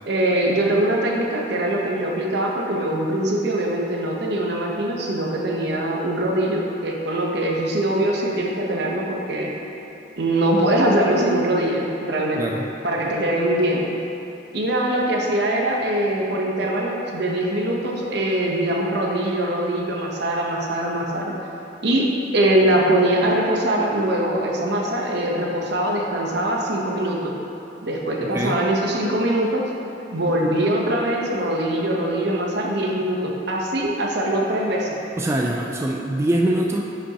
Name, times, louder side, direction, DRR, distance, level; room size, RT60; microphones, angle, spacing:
voice 1, 0.0-9.5 10.2-12.4 12.8-13.9 14.5-21.3 21.8-22.1 22.3-27.3 27.8-29.6 30.1-34.9, right 1 dB, 65° right, -1 dB, 1.0 m, -22 dB
voice 2, 12.3-12.7 28.2-28.6 35.2-36.8, right 1 dB, 15° right, -1 dB, 0.3 m, -23 dB
9.7 x 5.4 x 2.9 m, 2.8 s
head